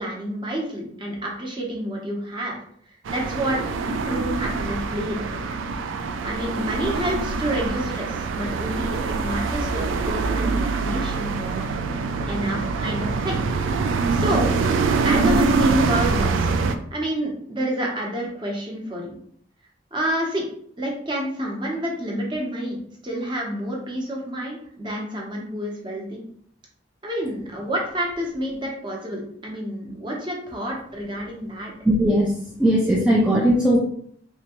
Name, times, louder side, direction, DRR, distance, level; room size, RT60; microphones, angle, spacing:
voice 1, 0.0-2.6 3.1-5.3 6.2-13.5 14.1-14.5 15.0-16.5 16.9-19.2 19.9-20.4 20.8-22.8 23.0-26.2 27.0-31.7, equal, 25° right, -1 dB, 0.8 m, -29 dB
sound 1, 3.1-16.8, right 4 dB, 85° right, 0.3 m, -24 dB
voice 2, 31.8-33.8, equal, 5° right, -5 dB, 0.4 m, -19 dB
3.3 x 2.8 x 2.9 m, 0.64 s
head